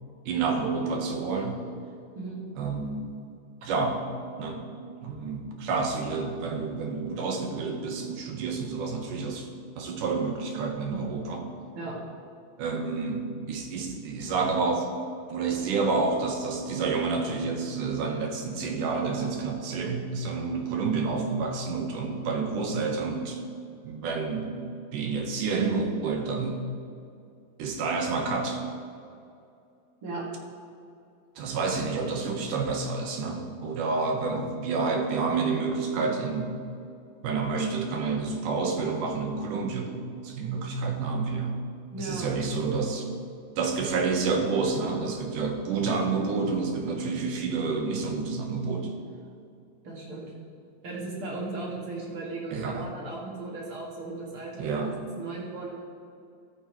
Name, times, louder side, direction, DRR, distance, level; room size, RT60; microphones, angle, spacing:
voice 1, 0.3-1.6 2.6-3.1 3.6-4.0 4.4-4.6 5.0-9.5 9.8-11.5 12.6-14.9 15.3-23.4 23.8-24.5 24.9-26.6 27.6-28.6 31.4-36.5 37.2-40.0 40.2-41.6 42.0-43.1 43.6-48.9 52.5-52.9 54.6-54.9, right 4 dB, 75° right, 3 dB, 2.4 m, -29 dB
voice 2, 41.9-42.3 49.8-50.3 50.8-55.7, right 2 dB, 45° right, -3 dB, 2.3 m, -36 dB
14.0 x 8.9 x 3.0 m, 2.5 s
omnidirectional pair, 4.0 m